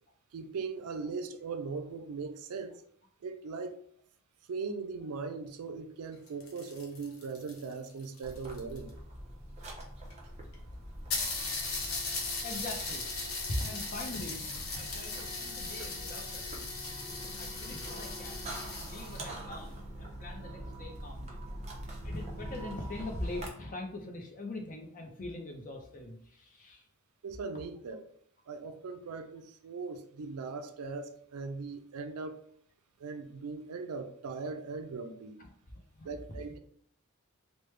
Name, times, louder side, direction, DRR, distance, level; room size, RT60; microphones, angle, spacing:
voice 1, 0.3-2.8 3.2-3.8 4.5-8.9 27.2-28.0 28.5-32.4 33.0-35.4 36.0-36.6, right 4 dB, 85° right, 0.4 m, -39 dB
sound 1, 6.1-8.9 9.8-9.9 10.1-10.2 10.5-10.6 11.1-19.3, left 3 dB, 70° left, 0.8 m, -38 dB
sound 2, 8.2-23.5, right 1 dB, 30° right, 0.6 m, -44 dB
voice 2, 12.4-13.1 13.6-16.7 17.4-18.5 18.8-21.4 22.0-26.8 35.4-35.5 36.0-36.1, left 2 dB, 35° left, 0.6 m, -42 dB
3.2 x 2.1 x 3.2 m
head